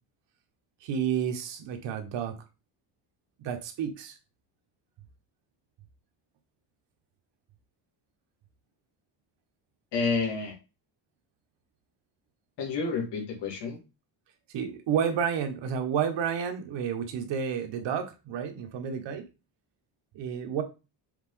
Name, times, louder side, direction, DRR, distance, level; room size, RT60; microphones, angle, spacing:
voice 1, 0.8-2.3 3.4-4.2 14.5-19.2 20.1-20.6, right 8 dB, 85° right, 5 dB, 1.6 m, -30 dB
voice 2, 9.9-10.6 12.6-13.8, left 4 dB, 75° left, 2 dB, 2.5 m, -29 dB
7.1 x 3.7 x 3.9 m, 0.28 s
cardioid pair, 160°, 42 cm